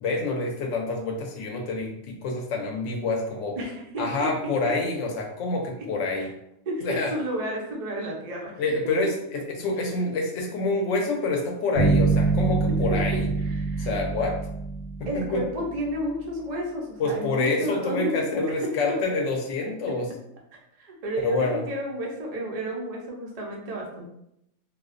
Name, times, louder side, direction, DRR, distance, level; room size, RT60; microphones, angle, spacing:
voice 1, 0.0-3.6 4.0-6.3 6.8-7.1 8.6-13.3 13.8-14.4 15.0-15.4 17.0-20.1 21.2-21.6, left 3 dB, 70° left, 1 dB, 0.8 m, -27 dB
voice 2, 3.6-4.5 6.7-8.6 13.1-13.9 15.1-18.7 20.8-24.1, equal, 80° right, -2 dB, 0.3 m, -32 dB
sound 1, 11.8-15.7, right 3 dB, 90° left, 1.1 m, -25 dB
2.4 x 2.1 x 2.4 m, 0.78 s
omnidirectional pair, 1.5 m